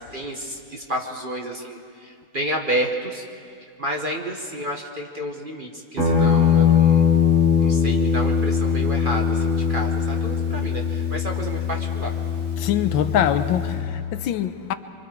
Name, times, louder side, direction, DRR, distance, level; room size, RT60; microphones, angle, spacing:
voice 1, 0.0-3.2 3.8-7.1 7.6-12.1, right 1 dB, 30° right, 1.2 m, -30 dB
Guitar, 6.0-13.8, left 7 dB, 75° right, 6.9 m, -21 dB
voice 2, 12.6-14.7, left 10 dB, 80° left, 1.4 m, -23 dB
25.5 x 24.5 x 4.6 m
omnidirectional pair, 2.1 m